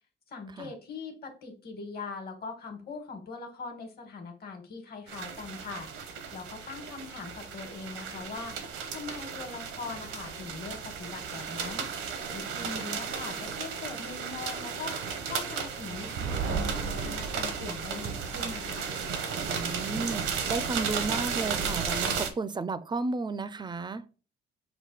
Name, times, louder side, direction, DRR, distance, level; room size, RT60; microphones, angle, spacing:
voice 1, 0.3-5.9 6.3-8.6 8.9-11.9 12.3-15.0 15.3-18.9, left 4 dB, 50° left, 1.4 m, -41 dB
sound 1, 5.1-22.3, right 6 dB, 90° right, 0.8 m, -34 dB
voice 2, 12.6-13.0 19.4-24.0, right 3 dB, 20° right, 0.4 m, -33 dB
5.5 x 2.3 x 4.0 m
cardioid pair, 90°, 20 cm